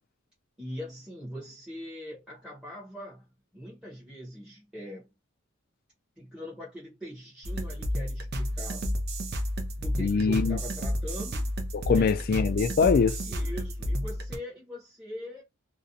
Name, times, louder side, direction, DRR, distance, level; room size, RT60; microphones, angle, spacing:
voice 1, 0.6-3.3 3.5-5.1 6.2-8.9 9.8-11.5 11.9-12.1 13.3-15.4, equal, 5° right, 0.7 m, -41 dB
sound 1, 7.4-14.4, equal, 50° right, 0.5 m, -31 dB
voice 2, 10.0-10.6 11.7-13.2, left 5 dB, 45° left, 0.3 m, -23 dB
2.5 x 2.1 x 2.6 m
head